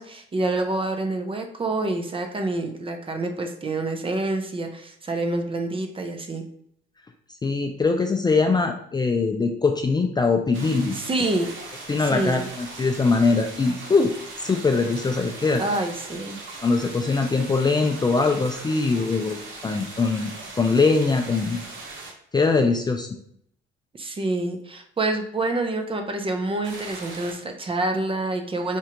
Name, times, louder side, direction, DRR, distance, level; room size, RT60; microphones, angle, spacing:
voice 1, 0.0-6.4 10.9-11.5 12.0-12.4 15.6-16.4 23.9-28.8, right 2 dB, 25° right, 5 dB, 0.6 m, -27 dB
voice 2, 7.4-11.0 11.9-14.1 14.4-15.6 16.6-21.6 22.3-23.1, left 4 dB, 20° left, 4 dB, 0.4 m, -22 dB
sound 1, 10.5-22.1 26.6-27.3, right 3 dB, 75° right, 0.9 m, -39 dB
4.4 x 2.4 x 2.9 m, 0.69 s
cardioid pair, 90°, 20 cm